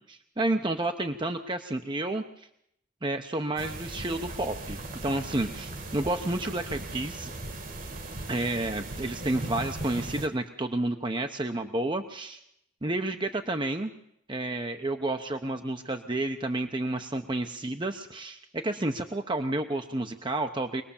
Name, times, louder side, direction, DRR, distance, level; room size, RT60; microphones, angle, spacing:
voice 1, 0.1-2.5 3.0-7.3 8.3-12.4 12.8-13.9 14.3-20.8, right 2 dB, 25° right, 5 dB, 0.9 m, -30 dB
sound 1, 3.6-10.3, right 2 dB, 45° right, 1.7 m, -38 dB
24.5 x 19.0 x 7.2 m, 0.74 s
head